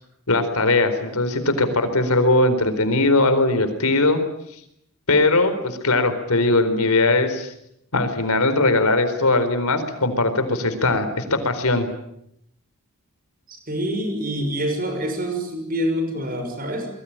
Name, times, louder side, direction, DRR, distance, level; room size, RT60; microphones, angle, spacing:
voice 1, 0.3-4.2 5.1-7.5 7.9-11.9, left 2 dB, 85° left, 9 dB, 4.3 m, -20 dB
voice 2, 13.5-16.9, equal, 40° right, 7 dB, 6.0 m, -26 dB
25.0 x 22.5 x 9.0 m, 0.75 s
head